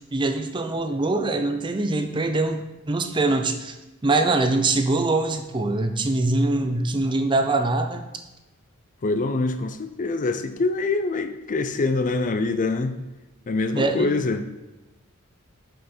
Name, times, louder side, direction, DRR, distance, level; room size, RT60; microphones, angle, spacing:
voice 1, 0.1-2.6 2.9-3.7 4.0-8.1 13.8-14.2, right 2 dB, 20° right, 6 dB, 0.5 m, -23 dB
voice 2, 9.0-13.0 13.5-14.5, left 3 dB, 40° left, 9 dB, 0.4 m, -24 dB
7.5 x 5.5 x 4.3 m, 1.0 s
head